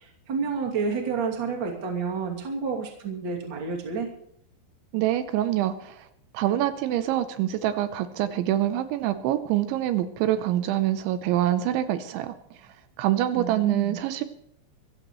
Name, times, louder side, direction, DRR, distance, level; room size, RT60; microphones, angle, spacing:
voice 1, 0.0-4.1 13.3-14.0, right 5 dB, 30° right, 1 dB, 2.4 m, -30 dB
voice 2, 4.9-6.1 6.3-12.4 13.0-14.2, right 12 dB, 80° right, 11 dB, 3.1 m, -25 dB
25.0 x 15.0 x 3.1 m, 0.71 s
omnidirectional pair, 5.5 m